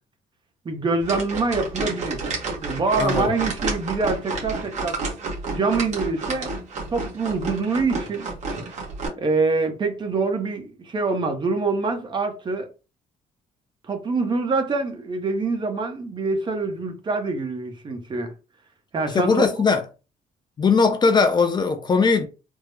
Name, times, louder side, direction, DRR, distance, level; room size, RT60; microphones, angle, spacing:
voice 1, 0.6-2.2 2.6-5.0 5.5-6.5 6.9-8.3 9.2-12.7 13.9-18.3 18.9-19.4, right 3 dB, 30° right, 0.8 m, -25 dB
sound 1, 1.0-9.1, right 3 dB, 50° right, 1.3 m, -30 dB
voice 2, 3.0-3.3 19.1-19.8 20.6-22.3, left 4 dB, 30° left, 0.5 m, -19 dB
3.5 x 2.0 x 3.2 m
cardioid pair, 115°, 15 cm